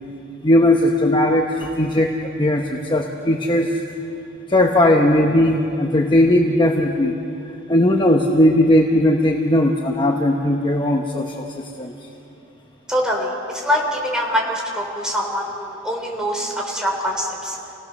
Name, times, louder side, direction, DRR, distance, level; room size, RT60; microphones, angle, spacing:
voice 1, 0.4-3.7 4.5-7.1 7.7-11.4 11.8-11.9, left 1 dB, 25° left, 2 dB, 1.0 m, -17 dB
voice 2, 12.9-17.6, equal, 5° right, -1 dB, 3.8 m, -24 dB
28.5 x 17.5 x 6.5 m, 2.9 s
head